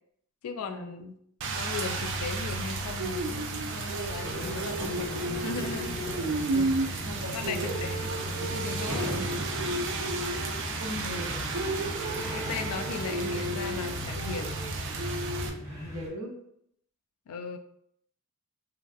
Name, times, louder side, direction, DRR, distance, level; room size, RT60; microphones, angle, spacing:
voice 1, 0.4-1.2 1.5-5.9 6.5-6.7 7.3-7.9 8.2-9.3 12.1-14.6 17.3-17.6, left 5 dB, 90° left, 8 dB, 0.3 m, -37 dB
Rain, 1.4-15.5, right 2 dB, 55° right, 0.4 m, -32 dB
sound 1, 4.2-16.1, equal, 15° right, 1.0 m, -38 dB
voice 2, 7.0-7.9 10.8-11.4 15.8-16.4, equal, 80° right, -1 dB, 0.7 m, -38 dB
3.0 x 2.5 x 2.4 m, 0.70 s
head